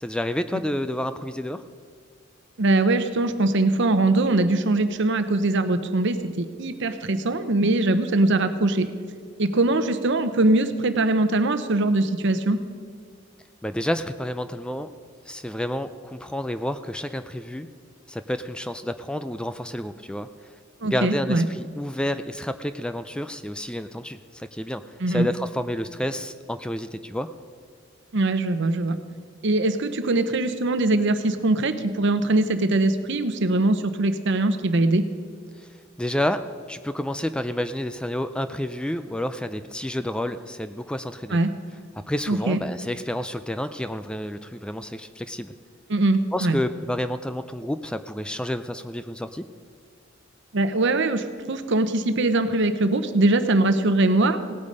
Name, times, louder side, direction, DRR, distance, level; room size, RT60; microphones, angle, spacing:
voice 1, 0.0-1.6 13.6-14.9 15.3-17.7 18.1-20.3 20.8-24.8 25.1-27.3 35.6-35.7 36.0-36.4 36.7-41.4 42.1-45.5 46.3-49.5, left 1 dB, 5° left, 10 dB, 0.3 m, -29 dB
voice 2, 2.6-8.9 9.4-12.6 20.8-21.5 25.0-25.3 28.1-29.0 29.4-35.1 41.3-41.5 42.3-42.6 45.9-46.6 50.5-54.4, right 2 dB, 65° right, 10 dB, 0.9 m, -22 dB
17.5 x 8.4 x 5.4 m, 2.1 s
head